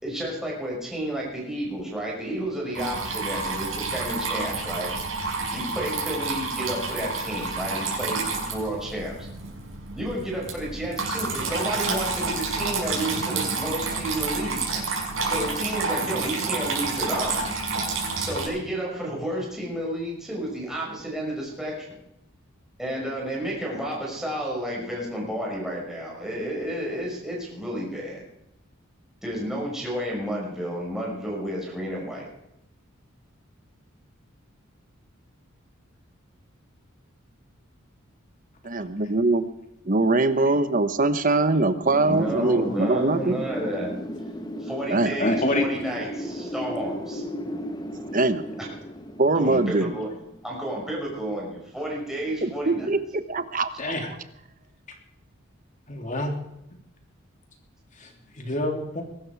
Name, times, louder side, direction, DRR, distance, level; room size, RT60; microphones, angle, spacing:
voice 1, 0.0-4.9 5.5-9.3 10.0-14.6 15.2-17.4 18.2-22.0 22.8-28.2 29.2-32.3 42.0-44.0 44.6-47.2 49.3-50.1 50.4-52.9, right 1 dB, ahead, -3 dB, 5.8 m, -31 dB
Water tap faucet / Trickle dribble, 2.7-18.5, right 4 dB, 70° right, 6.1 m, -29 dB
voice 2, 38.6-39.5 39.8-43.3 44.9-45.1 48.1-48.5 49.2-49.9 52.4-53.0 53.3-53.7, right 2 dB, 40° right, 11 dB, 1.1 m, -22 dB
Wind, 41.9-50.6, equal, 20° left, 1.1 m, -35 dB
voice 3, 45.2-45.6 48.5-48.6 53.8-54.1 55.9-56.3 58.0-58.1 58.3-59.0, left 1 dB, 35° left, 3 dB, 3.0 m, -26 dB
22.5 x 12.5 x 4.7 m, 0.85 s
head